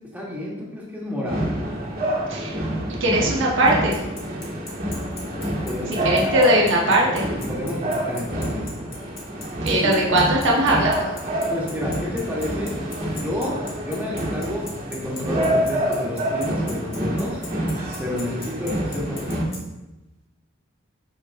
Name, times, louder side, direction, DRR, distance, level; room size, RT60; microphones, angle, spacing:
voice 1, 0.1-1.5 5.6-6.3 7.5-8.6 9.8-9.9 11.5-12.8 13.0-13.6 13.8-17.4 18.0-19.5, left 1 dB, 10° right, -5 dB, 1.6 m, -30 dB
sound 1, 1.3-19.5, right 1 dB, 50° right, 1.8 m, -27 dB
voice 2, 3.0-4.0 6.0-7.2 9.6-11.1, right 1 dB, 65° right, -3 dB, 1.3 m, -19 dB
Bicycle, 3.7-19.6, left 4 dB, 30° left, 2.0 m, -39 dB
8.9 x 5.0 x 2.6 m, 1.0 s
head